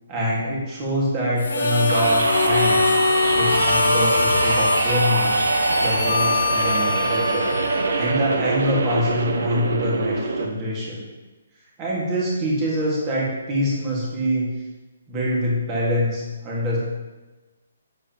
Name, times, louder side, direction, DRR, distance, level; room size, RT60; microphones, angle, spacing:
voice 1, 0.1-2.9 3.3-5.4 5.8-7.5 7.9-11.0 11.8-14.5 15.1-16.8, equal, 15° right, -5 dB, 1.8 m, -25 dB
Harmonica, 1.4-8.3, left 2 dB, 85° left, 1.2 m, -22 dB
sound 1, 1.9-10.5, right 3 dB, 65° right, 0.8 m, -24 dB
8.0 x 7.3 x 2.9 m, 1.2 s
hypercardioid pair, 175°, 0 cm